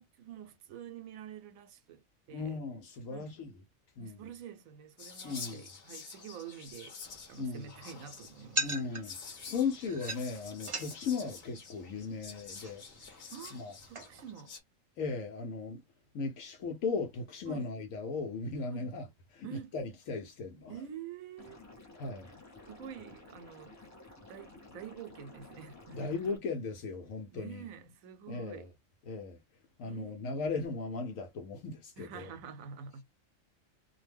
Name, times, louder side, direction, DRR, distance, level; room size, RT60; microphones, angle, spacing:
voice 1, 0.0-2.0 2.3-2.6 3.1-3.4 4.0-7.0 7.3-8.7 13.3-13.6 13.9-14.5 17.5-17.7 18.7-18.9 19.4-19.7 20.7-21.6 22.7-23.8 24.3-26.2 27.3-28.7 29.8-30.4 32.0-33.0, right 8 dB, 90° right, 1.0 m, -47 dB
voice 2, 2.3-3.5 4.0-4.2 5.2-5.7 7.4-7.7 8.6-9.2 9.5-12.8 13.5-13.7 15.0-15.8 16.1-19.1 19.3-20.7 22.0-22.3 25.9-27.6 28.3-28.7 29.1-29.4 29.8-32.3, left 4 dB, 80° left, 1.0 m, -37 dB
Whispering, 5.0-14.6, left 5 dB, 50° left, 0.9 m, -48 dB
sound 1, 7.0-14.3, right 2 dB, 30° right, 0.6 m, -42 dB
Liquid, 21.4-26.4, left 2 dB, 20° left, 0.5 m, -53 dB
2.6 x 2.1 x 3.3 m
omnidirectional pair, 1.4 m